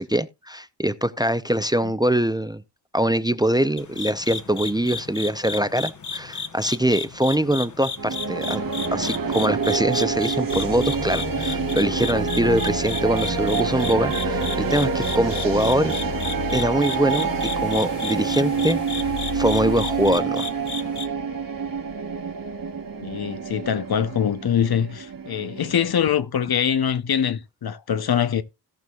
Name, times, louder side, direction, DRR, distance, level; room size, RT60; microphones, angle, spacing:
voice 1, 0.0-2.6 2.9-8.6 8.9-16.0 16.5-17.3 17.6-20.5, right 1 dB, 10° right, 0.6 m, -23 dB
sound 1, 3.8-21.1, left 5 dB, 45° left, 1.2 m, -34 dB
sound 2, 8.0-26.2, right 5 dB, 50° right, 1.6 m, -27 dB
sound 3, 10.5-20.1, left 5 dB, 75° left, 2.7 m, -35 dB
voice 2, 23.0-28.4, left 8 dB, 60° left, 0.8 m, -23 dB
17.0 x 6.1 x 2.4 m
wide cardioid pair, 100°, 42 cm